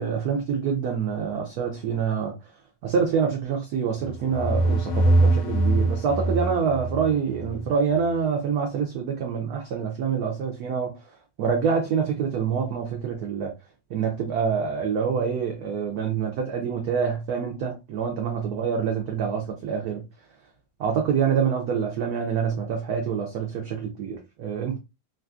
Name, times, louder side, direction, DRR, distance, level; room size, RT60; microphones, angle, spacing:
voice 1, 0.0-2.3 2.8-10.9 11.4-13.5 13.9-20.0 20.8-24.8, right 6 dB, 70° right, 0.9 m, -26 dB
sound 1, 4.0-7.7, right 2 dB, 75° left, 1.0 m, -23 dB
3.2 x 2.5 x 2.2 m
omnidirectional pair, 2.2 m